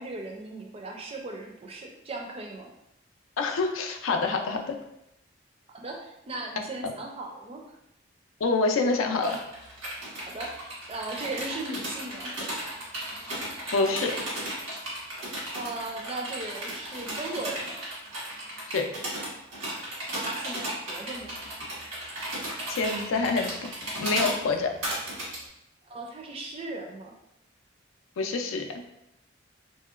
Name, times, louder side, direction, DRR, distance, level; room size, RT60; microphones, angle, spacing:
voice 1, 0.0-2.7 5.7-7.6 10.2-12.5 15.5-17.8 20.1-21.4 25.9-27.1, right 2 dB, 30° right, 1 dB, 0.4 m, -37 dB
voice 2, 3.4-4.8 6.8-6.9 8.4-9.5 13.7-14.2 18.7-18.9 22.7-24.7 28.2-28.7, left 3 dB, 85° left, 4 dB, 0.4 m, -27 dB
sound 1, 9.2-25.4, right 1 dB, 90° right, 1.3 m, -35 dB
2.9 x 2.7 x 2.4 m, 0.84 s
head